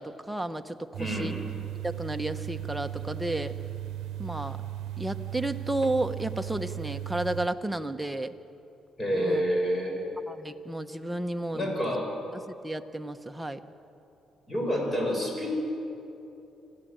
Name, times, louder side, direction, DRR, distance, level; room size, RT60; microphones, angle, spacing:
voice 1, 0.0-1.4 1.8-3.5 4.2-4.6 5.0-8.3 9.1-9.4 10.3-11.7 12.5-13.6, right 1 dB, 5° right, 7 dB, 1.1 m, -32 dB
sound 1, 0.9-7.5, right 12 dB, 80° right, 0.8 m, -36 dB
voice 2, 1.0-1.3 9.0-10.2 11.5-12.1 14.5-15.5, equal, 25° left, 0 dB, 7.2 m, -28 dB
26.5 x 15.5 x 9.0 m, 2.9 s
cardioid pair, 90°, 0 cm